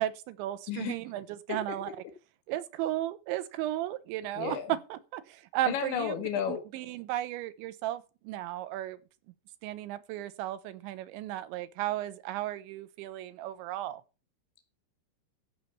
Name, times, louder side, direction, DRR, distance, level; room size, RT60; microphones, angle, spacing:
voice 1, 0.0-1.9 2.5-6.1 6.5-9.0 9.6-14.0, right 14 dB, 90° right, 3.3 m, -35 dB
voice 2, 4.4-4.7 5.7-6.6, left 9 dB, 80° left, 3.7 m, -32 dB
14.0 x 5.9 x 6.9 m
omnidirectional pair, 5.2 m